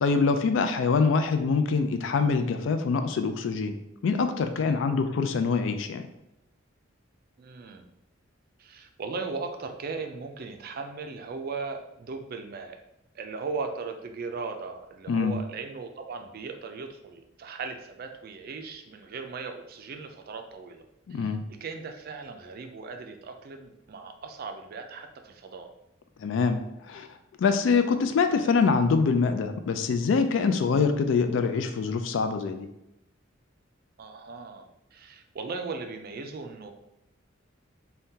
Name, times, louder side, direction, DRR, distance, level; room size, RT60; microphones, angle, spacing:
voice 1, 0.0-3.8 4.0-6.1 15.1-15.4 21.1-21.4 26.2-27.1 27.4-32.7, left 5 dB, 70° left, 8 dB, 0.3 m, -24 dB
voice 2, 7.4-7.9 8.6-12.8 13.1-20.8 21.1-25.7 34.0-36.7, right 4 dB, 50° right, 6 dB, 0.4 m, -38 dB
3.6 x 2.2 x 2.7 m, 0.85 s
head